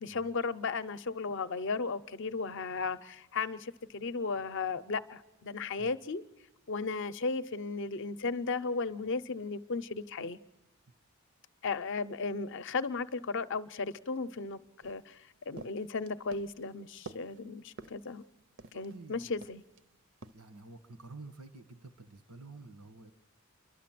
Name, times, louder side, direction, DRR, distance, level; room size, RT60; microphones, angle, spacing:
voice 1, 0.0-6.2 6.7-10.4 11.6-18.2 18.7-19.6, left 4 dB, 55° left, 0.6 m, -35 dB
sound 1, 14.8-19.0 19.4-19.8 20.2-20.4, right 3 dB, 55° right, 0.6 m, -50 dB
voice 2, 18.6-19.4 20.3-23.1, right 3 dB, 90° right, 1.6 m, -50 dB
30.0 x 12.0 x 7.6 m
head